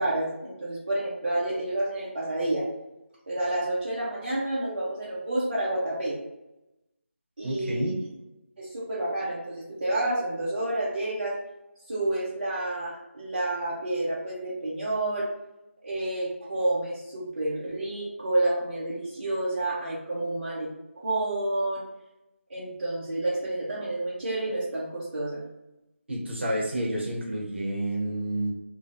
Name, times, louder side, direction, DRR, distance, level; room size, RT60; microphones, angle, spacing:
voice 1, 0.0-2.7 3.3-6.2 7.4-7.9 8.6-11.4 11.9-15.3 15.8-20.7 21.0-21.8 22.5-25.4, right 1 dB, 40° right, -8 dB, 0.5 m, -29 dB
voice 2, 7.4-7.9 26.1-28.5, right 1 dB, 55° right, -3 dB, 0.9 m, -29 dB
2.5 x 2.1 x 2.5 m, 0.96 s
figure-of-eight pair, 170°, 7 cm